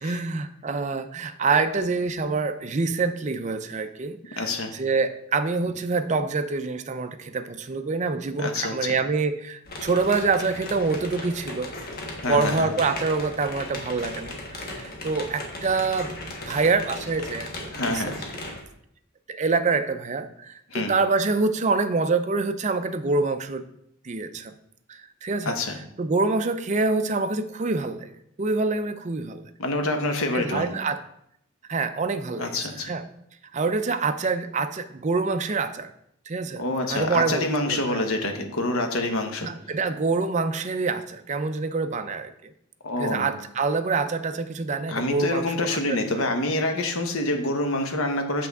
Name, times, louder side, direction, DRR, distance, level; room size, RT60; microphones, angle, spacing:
voice 1, 0.0-11.7 12.2-16.1 16.4-18.1 19.3-23.6 24.0-24.5 24.9-25.5 26.0-28.1 28.4-29.5 30.3-31.0 31.7-32.6 32.8-33.0 33.5-35.9 36.3-36.6 36.9-38.0 39.4-42.5 43.0-46.3, right 4 dB, 35° right, 9 dB, 0.4 m, -26 dB
voice 2, 4.4-4.7 8.4-9.0 12.2-12.7 17.7-18.2 20.7-20.9 25.4-25.8 29.6-30.7 32.4-32.9 36.6-39.5 42.8-43.3 44.9-48.5, left 2 dB, 80° left, 4 dB, 1.1 m, -26 dB
sound 1, 9.7-18.6, left 2 dB, 45° left, 1.3 m, -37 dB
6.9 x 5.9 x 3.5 m, 0.74 s
head